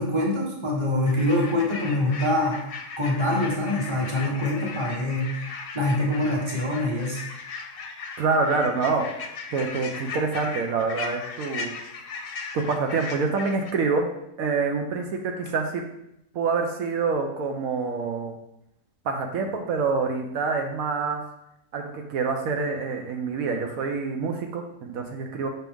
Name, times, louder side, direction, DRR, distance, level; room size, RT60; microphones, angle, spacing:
voice 1, 0.0-2.6 3.0-7.2, left 1 dB, 20° right, -3 dB, 1.3 m, -25 dB
sound 1, 1.1-13.7, left 4 dB, 55° left, 0.7 m, -37 dB
voice 2, 8.2-9.0 9.5-11.7 12.5-14.1 14.4-15.8 16.3-18.3 19.0-21.2 21.7-25.5, right 4 dB, 80° right, 3 dB, 1.1 m, -26 dB
6.0 x 4.4 x 3.5 m, 0.81 s
omnidirectional pair, 1.5 m